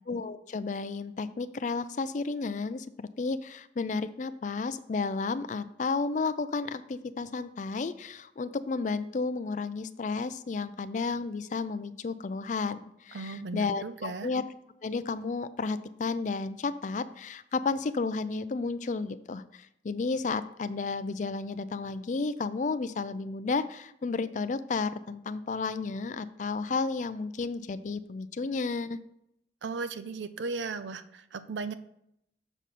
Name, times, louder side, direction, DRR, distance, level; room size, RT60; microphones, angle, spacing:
voice 1, 0.1-14.4 14.8-29.0, left 4 dB, 45° left, 12 dB, 0.4 m, -32 dB
voice 2, 13.1-14.3 29.6-31.7, right 4 dB, 85° right, 12 dB, 0.5 m, -36 dB
6.8 x 6.1 x 4.2 m, 0.76 s
head